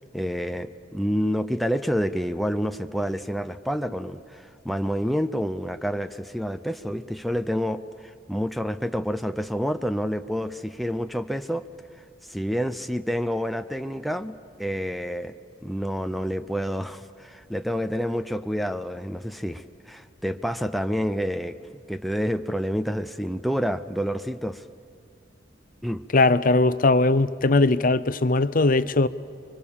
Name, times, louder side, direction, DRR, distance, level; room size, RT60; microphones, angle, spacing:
voice 1, 0.1-11.6 12.3-14.3 14.6-15.3 15.6-21.5 21.9-24.6 25.8-26.0, equal, ahead, 0.5 m, -28 dB
voice 2, 26.1-29.1, left 2 dB, 45° left, 0.7 m, -20 dB
30.0 x 23.5 x 7.1 m
head